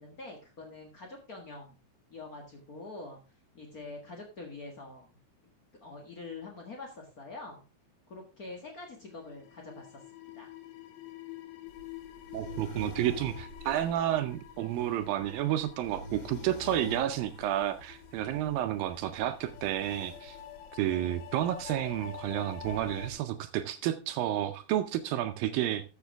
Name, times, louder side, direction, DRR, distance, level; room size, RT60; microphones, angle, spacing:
voice 1, 0.0-1.7 2.1-3.2 3.5-5.1 5.8-7.6 8.1-10.0 10.3-10.5, left 3 dB, 70° left, 1 dB, 0.8 m, -45 dB
sound 1, 8.9-23.1, left 13 dB, 90° left, 3.0 m, -48 dB
sound 2, 11.7-23.2, left 1 dB, 30° left, 2.3 m, -48 dB
voice 2, 12.3-20.4 20.7-25.8, right 12 dB, 80° right, 9 dB, 2.2 m, -31 dB
13.5 x 7.3 x 3.5 m, 0.32 s
omnidirectional pair, 4.6 m